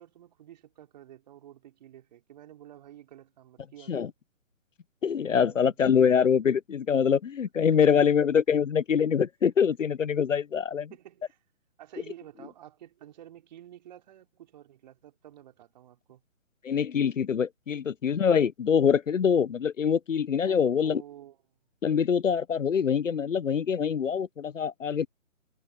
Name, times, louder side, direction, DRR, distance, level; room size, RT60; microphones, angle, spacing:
voice 1, 0.0-4.1 5.4-5.8 7.9-8.2 8.5-8.6 10.9-11.4 11.8-16.2 20.4-21.4, right 12 dB, 30° right, 4.1 m, -50 dB
voice 2, 5.0-10.9 16.6-21.0 21.8-25.1, left 7 dB, 70° left, 0.7 m, -24 dB
figure-of-eight pair, 145°, 40 cm